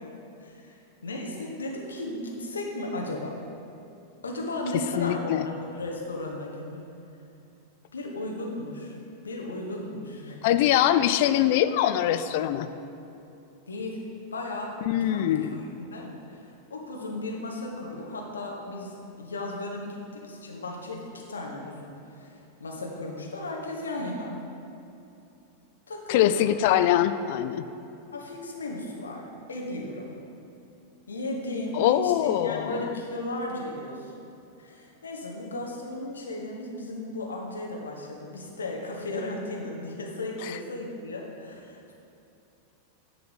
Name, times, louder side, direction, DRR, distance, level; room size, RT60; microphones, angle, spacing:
voice 1, 0.0-3.4 4.2-6.8 7.9-9.0 9.2-10.4 13.7-14.0 14.3-14.7 15.1-21.0 21.3-24.3 25.9-26.4 28.1-30.1 31.1-34.3 34.6-41.9, left 1 dB, 70° left, -1 dB, 1.3 m, -35 dB
voice 2, 5.0-5.4 10.4-12.7 14.9-15.6 26.1-27.7 31.7-32.9 40.4-40.6, left 12 dB, 50° left, 11 dB, 0.4 m, -23 dB
10.5 x 3.9 x 6.7 m, 2.9 s
figure-of-eight pair, 90°, 0 cm